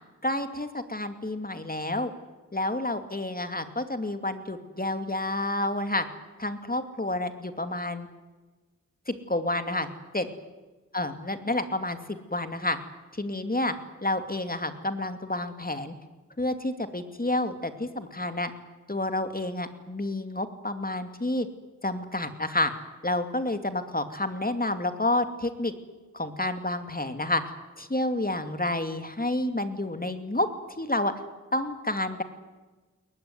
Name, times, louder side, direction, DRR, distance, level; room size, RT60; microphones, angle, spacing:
voice 1, 0.2-2.1 2.5-6.0 6.4-8.1 9.1-9.9 10.1-10.3 10.9-12.8 13.1-13.7 14.0-15.9 16.4-18.5 18.9-21.5 21.8-22.7 23.0-25.7 26.1-27.4 27.8-30.5 30.8-31.1 31.5-32.2, left 1 dB, 30° left, 9 dB, 2.7 m, -29 dB
22.5 x 19.5 x 9.7 m, 1.2 s
wide cardioid pair, 50°, 30 cm